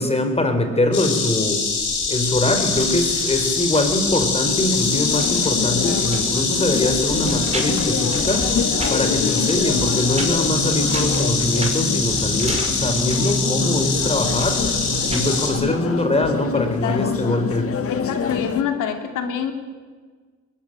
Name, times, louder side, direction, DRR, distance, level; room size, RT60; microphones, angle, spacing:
voice 1, 0.0-1.6 2.1-14.8 15.1-17.7, left 1 dB, 20° left, 7 dB, 4.7 m, -23 dB
Insect, 0.9-15.5, left 5 dB, 65° left, 7.2 m, -24 dB
sound 1, 2.0-15.3, right 2 dB, 20° right, 5.6 m, -31 dB
sound 2, 4.4-18.6, left 6 dB, 50° left, 1.8 m, -27 dB
voice 2, 5.9-6.2 15.5-15.9 16.8-17.4 17.9-19.5, left 7 dB, 85° left, 6 dB, 3.1 m, -27 dB
21.5 x 21.0 x 9.2 m, 1.5 s
cardioid pair, 90°, 30 cm